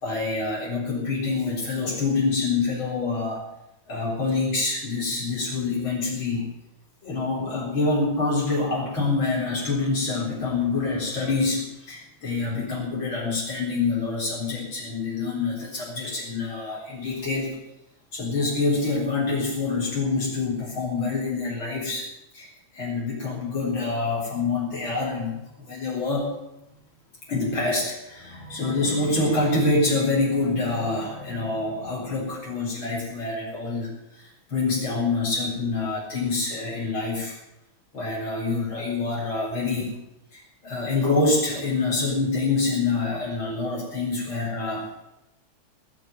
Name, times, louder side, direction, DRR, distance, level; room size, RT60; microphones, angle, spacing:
voice 1, 0.0-3.4 3.9-6.4 7.0-17.6 18.1-22.0 22.3-26.3 27.3-37.4 37.9-39.9 40.3-44.9, left 3 dB, 75° left, -4 dB, 4.8 m, -26 dB
19.5 x 6.9 x 9.0 m, 0.92 s
omnidirectional pair, 2.2 m